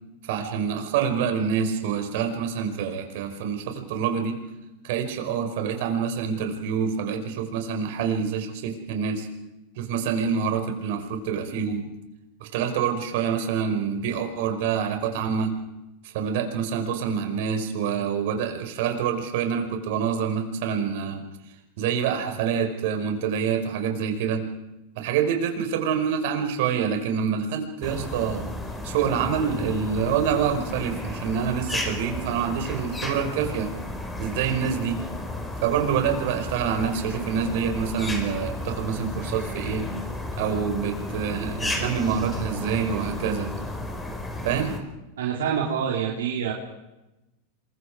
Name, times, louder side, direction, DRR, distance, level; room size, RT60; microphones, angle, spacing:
voice 1, 0.2-4.4 4.8-9.3 9.8-11.9 12.4-15.5 16.0-21.2 21.8-24.4 25.0-28.5 28.8-33.7 34.2-35.0 35.6-39.8 40.4-43.5 44.4-44.7, right 7 dB, 65° right, 5 dB, 5.1 m, -26 dB
sound 1, 27.8-44.8, left 2 dB, 10° left, 4.8 m, -33 dB
voice 2, 45.2-46.5, right 7 dB, 85° right, -2 dB, 3.9 m, -26 dB
27.0 x 23.5 x 4.9 m, 0.97 s
hypercardioid pair, 115°, 0 cm